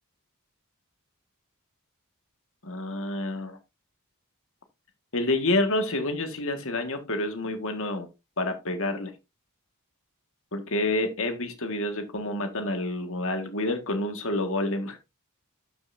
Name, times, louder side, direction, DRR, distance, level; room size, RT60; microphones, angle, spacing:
voice 1, 2.6-3.6 5.1-8.1 8.4-9.1 10.5-15.0, left 2 dB, 65° left, 1.9 m, -28 dB
12.0 x 6.9 x 2.7 m
head